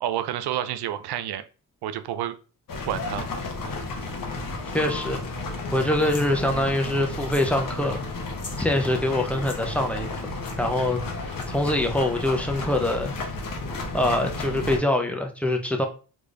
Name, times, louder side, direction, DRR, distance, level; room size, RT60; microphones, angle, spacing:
voice 1, 0.0-1.4 1.8-2.3 2.9-3.3, right 11 dB, 75° right, 12 dB, 0.5 m, -29 dB
sound 1, 2.7-14.8, left 2 dB, 55° left, 1.1 m, -32 dB
voice 2, 4.7-5.2 5.7-8.0 8.6-10.1 10.6-13.1 13.9-15.9, left 1 dB, 5° left, 3 dB, 0.8 m, -24 dB
sound 2, 6.0-6.3 7.2-7.6 7.8-7.9 8.3-8.6 9.3-9.6 10.4-10.6 11.3-11.7, left 4 dB, 40° left, 1.2 m, -42 dB
3.4 x 3.1 x 2.6 m, 0.36 s
cardioid pair, 60°, 40 cm